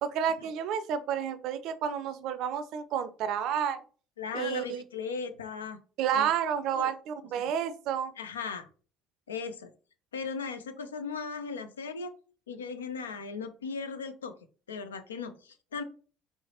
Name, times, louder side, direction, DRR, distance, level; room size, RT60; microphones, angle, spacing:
voice 1, 0.0-3.8 4.3-4.8 6.0-8.1, right 8 dB, 55° right, 12 dB, 0.4 m, -30 dB
voice 2, 4.2-5.8 6.1-6.3 6.7-6.9 7.4-7.5 8.2-8.7 9.3-9.7 10.1-12.1 12.5-14.4 14.7-15.8, left 5 dB, 80° left, 10 dB, 0.4 m, -37 dB
4.6 x 3.1 x 2.8 m, 0.40 s
figure-of-eight pair, 55°, 0 cm